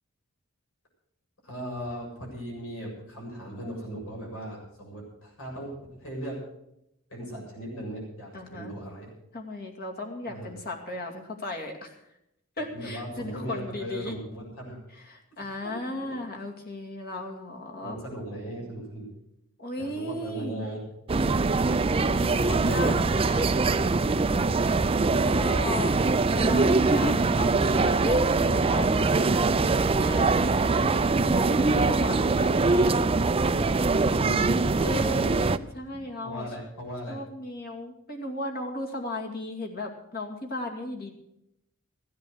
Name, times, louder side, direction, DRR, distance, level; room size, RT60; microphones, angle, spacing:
voice 1, 1.4-6.4 7.1-9.1 10.3-10.5 12.7-14.8 17.8-19.1 19.8-20.8 30.8-31.1 34.0-35.6 36.2-37.2, right 1 dB, 80° left, -2 dB, 7.5 m, -38 dB
voice 2, 8.3-8.7 9.3-12.0 12.6-14.2 15.1-18.0 19.6-20.7 22.0-23.9 25.2-30.8 31.3-33.1 34.8-35.3 35.7-36.5 37.1-41.1, left 2 dB, 50° left, 1 dB, 2.4 m, -36 dB
sound 1, 21.1-35.6, right 3 dB, 30° right, 0.5 m, -23 dB
15.5 x 10.5 x 6.5 m, 0.80 s
head